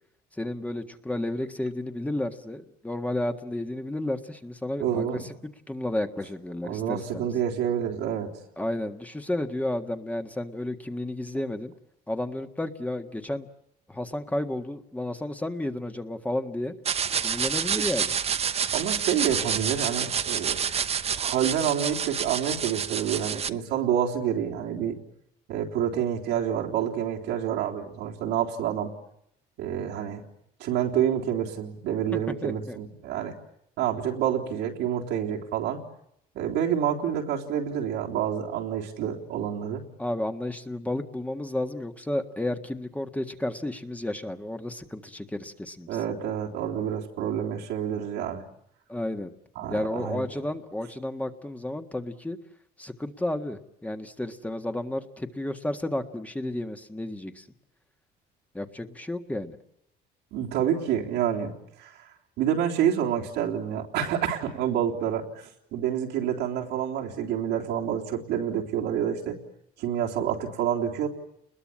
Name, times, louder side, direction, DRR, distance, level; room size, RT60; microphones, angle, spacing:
voice 1, 0.4-5.3 5.7-7.3 8.6-11.7 12.1-13.5 13.9-16.7 17.2-18.2 32.1-32.8 40.0-45.9 48.9-49.3 49.7-52.4 52.8-57.5 58.5-59.6, left 1 dB, 10° left, 6 dB, 1.7 m, -32 dB
voice 2, 4.8-5.3 6.6-8.3 18.7-20.6 21.2-25.0 25.5-28.9 29.6-30.3 30.6-33.3 33.8-35.8 36.3-39.8 45.9-48.4 49.6-50.3 60.3-62.0 62.4-65.2 65.7-69.4 69.8-71.1, right 9 dB, 90° right, -1 dB, 3.7 m, -28 dB
sound 1, 16.8-23.5, right 7 dB, 35° right, 1.0 m, -28 dB
30.0 x 21.5 x 8.8 m, 0.78 s
cardioid pair, 110°, 17 cm